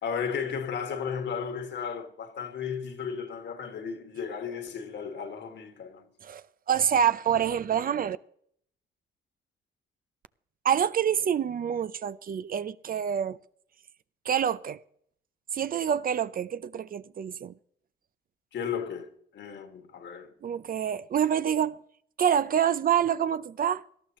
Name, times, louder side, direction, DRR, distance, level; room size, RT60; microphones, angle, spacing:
voice 1, 0.0-6.0 18.5-20.3, left 6 dB, 65° left, 2.0 m, -34 dB
voice 2, 6.2-8.2 10.6-13.4 14.3-14.8 15.5-17.5 20.4-21.8 22.2-23.8, right 9 dB, 45° right, 0.6 m, -27 dB
18.5 x 12.5 x 3.1 m
cardioid pair, 90°, 20 cm